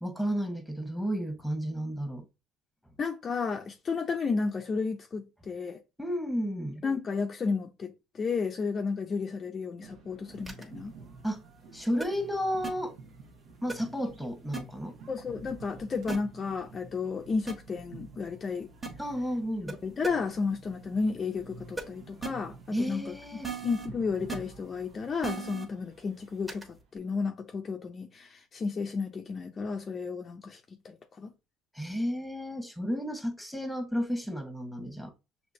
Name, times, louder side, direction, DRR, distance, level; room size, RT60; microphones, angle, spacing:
voice 1, 0.0-2.3 6.0-6.8 11.2-11.4 11.7-12.9 13.6-14.9 19.0-19.8 22.7-23.5 31.7-35.1, equal, ahead, 1.2 m, -32 dB
voice 2, 3.0-5.8 6.8-10.9 15.1-18.7 19.7-22.6 22.9-23.1 23.6-26.7 26.9-30.6 30.8-31.3, left 4 dB, 35° left, 0.5 m, -32 dB
sound 1, 9.8-27.1, right 4 dB, 75° right, 1.3 m, -51 dB
sound 2, 10.5-10.6 12.0-12.1 12.6-12.7 13.7-13.8 14.5-14.6 16.1-16.2 17.5-17.6 18.8-18.9 19.7-19.8 20.0-20.1 21.8-21.9 22.2-22.3 23.4-23.9 24.3-24.4 25.2-25.6 26.5-26.6, right 5 dB, 20° right, 1.3 m, -35 dB
6.5 x 2.8 x 2.7 m
cardioid pair, 120°, 0 cm